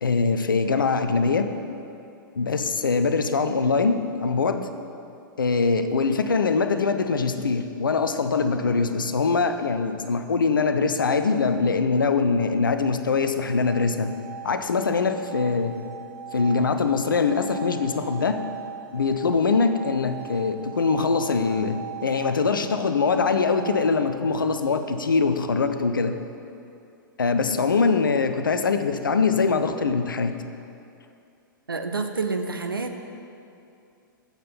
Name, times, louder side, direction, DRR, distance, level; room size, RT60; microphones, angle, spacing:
voice 1, 0.0-1.5 2.4-4.7 5.4-14.1 14.4-15.8 16.3-18.5 18.9-26.2 27.2-30.4, left 4 dB, 70° left, 9 dB, 0.6 m, -23 dB
sound 1, 13.3-24.2, right 8 dB, 40° right, 1.3 m, -40 dB
voice 2, 31.7-33.0, right 4 dB, 80° right, 6 dB, 0.7 m, -28 dB
7.4 x 7.3 x 5.5 m, 2.6 s
figure-of-eight pair, 105°, 11 cm